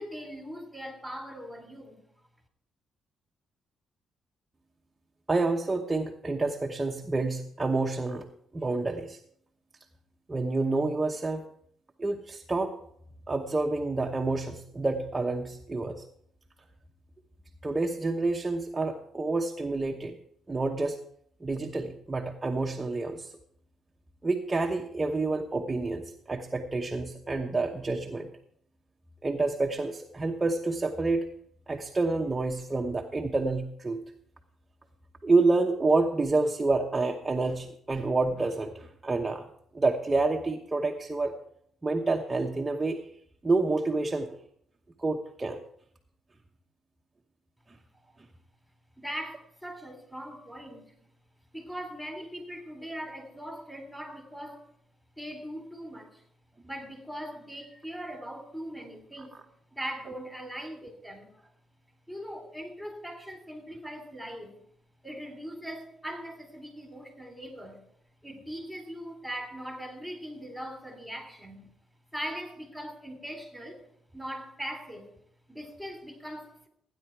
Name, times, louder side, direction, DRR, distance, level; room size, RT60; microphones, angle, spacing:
voice 1, 0.0-2.0 49.0-50.9 51.5-54.6 55.2-56.2 56.6-59.4 59.7-61.5 62.1-64.6 65.0-67.8 68.2-71.7 72.1-73.8 74.1-75.1 75.5-76.7, equal, 5° left, 3.4 m, -40 dB
voice 2, 5.3-8.3 8.5-9.2 10.3-11.5 12.0-12.8 13.3-16.0 17.6-20.2 20.5-21.0 21.4-23.3 24.2-28.3 29.2-31.3 31.7-34.0 35.2-39.5 39.7-41.3 41.8-43.0 43.4-44.3 45.0-45.6, right 3 dB, 20° right, 1.0 m, -28 dB
14.5 x 9.9 x 4.6 m
cardioid pair, 90°, 0 cm